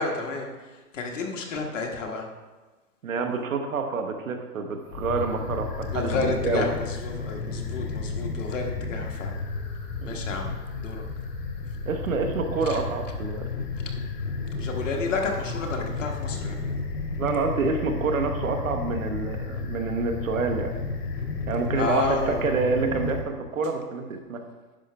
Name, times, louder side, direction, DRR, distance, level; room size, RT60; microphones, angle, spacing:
voice 1, 0.0-2.3 5.9-9.4 10.0-10.5 10.8-11.0 12.6-12.8 14.6-16.6 21.7-22.4, left 3 dB, 50° left, 1 dB, 1.4 m, -31 dB
voice 2, 3.0-6.7 10.0-10.3 11.8-13.4 17.2-20.7 21.5-24.4, right 4 dB, 55° right, 5 dB, 1.1 m, -27 dB
sound 1, 4.9-23.2, left 4 dB, 70° left, 2.0 m, -32 dB
10.0 x 6.4 x 3.4 m, 1.2 s
hypercardioid pair, 170°, 48 cm